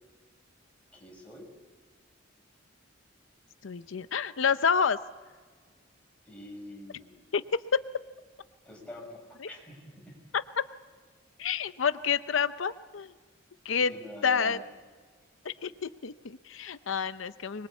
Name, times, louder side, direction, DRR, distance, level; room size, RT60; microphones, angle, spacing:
voice 1, 0.9-1.5 6.3-7.2 8.6-10.2 13.9-14.6, left 1 dB, 5° left, -1 dB, 6.5 m, -45 dB
voice 2, 3.6-5.0 7.3-7.8 9.4-9.5 10.3-10.6 11.4-13.1 13.6-13.9 14.2-14.6 15.4-17.7, left 6 dB, 85° left, 12 dB, 0.7 m, -28 dB
25.0 x 22.0 x 8.3 m, 1.5 s
head